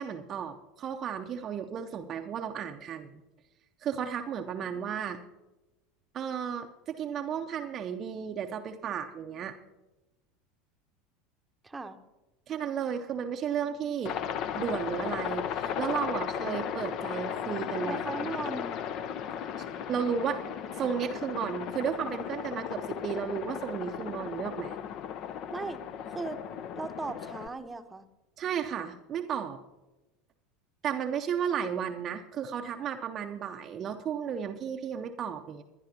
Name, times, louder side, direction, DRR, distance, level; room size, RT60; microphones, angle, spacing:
voice 1, 0.0-3.2 3.8-5.2 6.1-9.5 12.5-14.2 14.6-18.3 19.9-24.8 28.4-29.6 30.8-35.6, right 7 dB, 35° right, 4 dB, 0.7 m, -34 dB
voice 2, 11.6-12.0 17.8-18.8 25.5-25.8 26.1-26.4 26.8-28.0, right 3 dB, 15° right, 7 dB, 0.9 m, -37 dB
Aircraft, 14.1-27.5, left 8 dB, 45° left, 0.7 m, -36 dB
21.5 x 10.5 x 2.8 m, 1.0 s
figure-of-eight pair, 75°, 0 cm